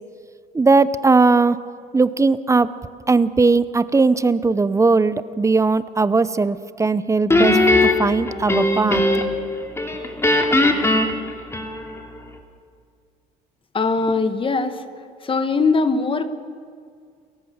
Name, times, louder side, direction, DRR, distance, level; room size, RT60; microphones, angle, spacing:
voice 1, 0.5-1.6 1.9-2.7 3.1-9.0, right 3 dB, 20° right, 15 dB, 0.7 m, -18 dB
Guitar, 7.3-9.4 9.8-12.1, left 2 dB, 15° left, 2.6 m, -19 dB
voice 2, 13.7-14.8 15.2-16.3, left 4 dB, 30° left, 10 dB, 1.4 m, -20 dB
29.0 x 14.5 x 7.2 m, 2.2 s
cardioid pair, 110°, 17 cm